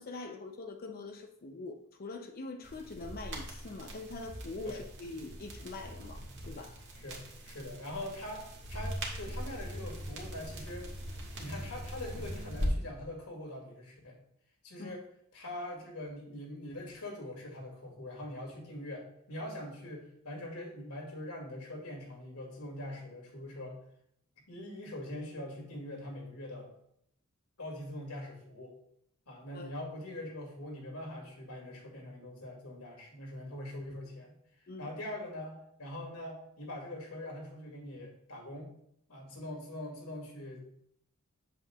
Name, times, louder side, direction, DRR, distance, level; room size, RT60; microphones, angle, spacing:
voice 1, 0.0-6.8 14.8-14.9 29.5-29.7 34.7-34.9, left 3 dB, 45° left, 5 dB, 0.6 m, -43 dB
sound 1, 2.6-12.7, equal, 55° right, 1.7 m, -41 dB
voice 2, 6.9-10.9 11.4-14.2 14.6-15.0 15.3-23.8 24.5-26.7 27.6-28.7 29.3-34.3 34.8-38.7 39.1-40.6, left 1 dB, 90° left, 0 dB, 2.3 m, -43 dB
8.1 x 7.8 x 2.3 m, 0.72 s
head